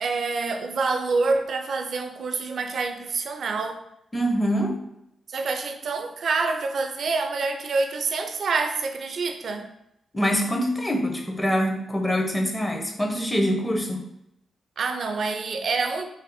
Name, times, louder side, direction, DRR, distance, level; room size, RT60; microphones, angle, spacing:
voice 1, 0.0-3.8 5.3-9.7 14.8-16.0, right 4 dB, 65° right, 6 dB, 0.4 m, -27 dB
voice 2, 4.1-4.8 10.1-14.0, equal, 20° left, 2 dB, 0.8 m, -24 dB
3.5 x 2.0 x 4.0 m, 0.81 s
hypercardioid pair, 40°, 0 cm